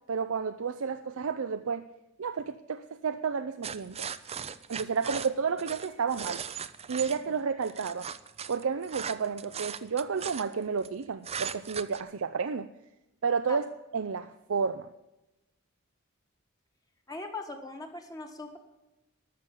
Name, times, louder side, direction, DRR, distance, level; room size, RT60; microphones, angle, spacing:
voice 1, 0.1-1.8 2.2-4.1 4.7-6.4 6.9-8.1 8.5-12.7 13.2-13.6 13.9-14.9, right 5 dB, 75° right, 9 dB, 0.5 m, -31 dB
sound 1, 3.6-7.2 7.6-10.9 11.2-12.0, right 7 dB, 30° right, 0.5 m, -38 dB
voice 2, 17.1-18.6, left 2 dB, 15° left, 4 dB, 1.6 m, -40 dB
12.5 x 6.9 x 8.2 m, 0.98 s
head